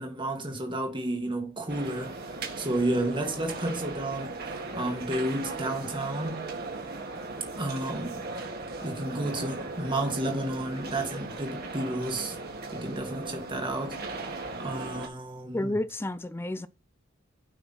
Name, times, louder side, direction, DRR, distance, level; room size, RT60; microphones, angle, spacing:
voice 1, 0.0-6.5 7.6-8.2 8.8-12.4 12.7-15.8, right 1 dB, 25° right, 1.8 m, -32 dB
sound 1, 1.7-15.1, right 3 dB, 50° right, 2.0 m, -38 dB
voice 2, 15.5-16.7, left 1 dB, 10° left, 0.4 m, -30 dB
12.5 x 5.8 x 4.2 m
head